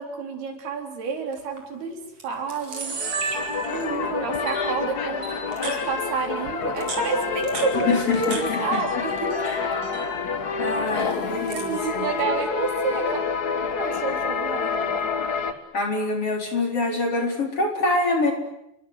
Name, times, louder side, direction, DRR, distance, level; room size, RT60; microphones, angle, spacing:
voice 1, 0.0-3.0 3.6-9.5 10.9-11.2 11.5-13.3 13.8-15.0, right 4 dB, 75° right, 4 dB, 6.0 m, -30 dB
Camera, 1.3-1.6 2.2-2.3 2.5-4.0 4.5-4.6 5.2-5.8 6.6-8.4 8.7-9.4 9.7-10.1 10.9-11.7, right 4 dB, 40° right, 5.6 m, -33 dB
sound 1, 2.7-15.5, left 5 dB, 80° left, 0.8 m, -28 dB
voice 2, 7.9-8.8 9.4-9.7 10.6-12.0 15.7-18.3, left 3 dB, 35° left, 3 dB, 4.8 m, -25 dB
30.0 x 24.0 x 8.2 m, 0.83 s
omnidirectional pair, 4.5 m